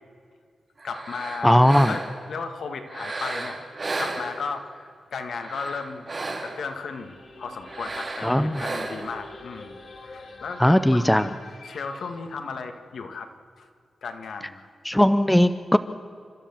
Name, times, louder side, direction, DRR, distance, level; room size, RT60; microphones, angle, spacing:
voice 1, 0.8-3.6 4.0-6.1 6.4-11.3 11.6-13.3 13.6-13.7 14.0-14.6, left 5 dB, 70° left, 6 dB, 1.8 m, -35 dB
sound 1, 0.8-2.3 2.8-4.7 5.3-6.8 7.6-9.2, right 2 dB, 30° right, 2.5 m, -34 dB
voice 2, 1.4-1.9 8.2-8.7 10.6-11.3 14.8-15.8, equal, 5° left, 12 dB, 0.5 m, -18 dB
sound 2, 6.7-12.2, left 3 dB, 50° left, 2.5 m, -46 dB
29.5 x 13.0 x 7.3 m, 2.2 s
wide cardioid pair, 160°, 0 cm